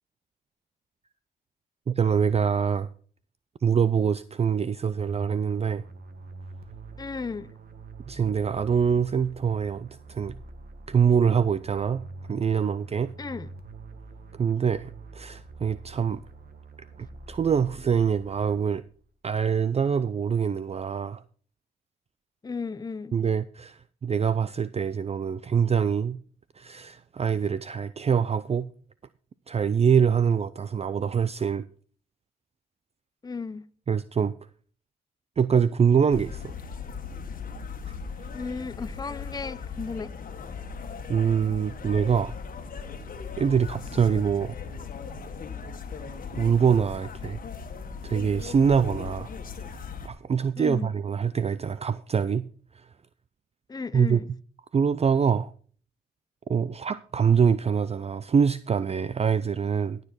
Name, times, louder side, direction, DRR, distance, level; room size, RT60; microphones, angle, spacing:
voice 1, 1.9-2.9 3.6-5.8 8.1-10.4 10.9-13.1 14.3-16.2 17.0-18.8 19.2-21.2 23.1-26.2 26.6-28.7 29.5-31.6 33.9-34.3 35.4-36.5 41.1-42.3 43.4-44.6 46.4-47.4 48.0-49.3 49.6-52.5 52.7-52.9 53.9-54.2 54.7-55.5 56.5-60.0, right 7 dB, 35° right, 0.5 m, -24 dB
sound 1, 4.9-19.0, right 3 dB, 60° right, 1.8 m, -45 dB
voice 2, 7.0-7.5 13.2-13.5 22.4-23.1 33.2-33.6 38.3-40.1 50.6-50.9 53.7-54.3, left 4 dB, 20° left, 0.6 m, -34 dB
sound 2, 36.1-50.1, left 5 dB, 50° left, 1.6 m, -38 dB
14.5 x 6.9 x 4.3 m
cardioid pair, 65°, 18 cm